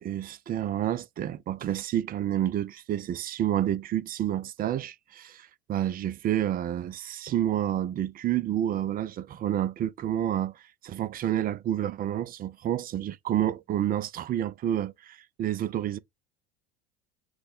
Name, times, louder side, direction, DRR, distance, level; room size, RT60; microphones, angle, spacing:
voice 1, 0.0-16.0, right 11 dB, 30° right, 0.4 m, -29 dB
6.1 x 2.1 x 3.6 m
hypercardioid pair, 85°, 30 cm